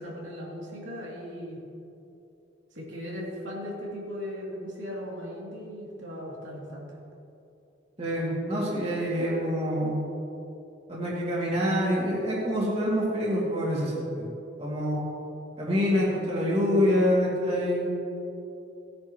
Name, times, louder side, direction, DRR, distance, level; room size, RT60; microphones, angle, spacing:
voice 1, 0.0-1.6 2.7-6.9, equal, 85° right, -5 dB, 2.7 m, -38 dB
voice 2, 8.0-10.0 10.9-14.3 14.6-15.0 15.6-17.9, equal, 30° right, -6 dB, 2.4 m, -26 dB
17.0 x 9.7 x 3.0 m, 2.8 s
head